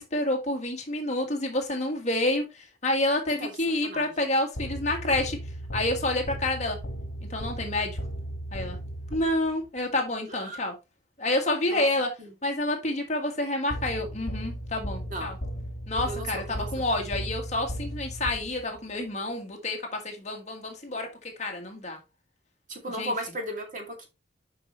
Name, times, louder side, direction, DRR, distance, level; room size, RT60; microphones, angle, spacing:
voice 1, 0.0-5.4 5.7-6.8 7.3-8.0 8.5-8.8 9.1-10.7 11.2-12.1 12.4-15.4 15.9-22.0 23.0-23.1, left 1 dB, 40° left, 1.6 m, -28 dB
sound 1, 4.6-9.7 13.7-18.9, equal, 75° left, 1.5 m, -36 dB
voice 2, 10.3-10.6 11.7-11.9 12.2-12.3 15.1-15.3 16.1-16.7 22.7-24.1, right 1 dB, 45° right, 2.3 m, -35 dB
7.4 x 5.5 x 3.1 m
head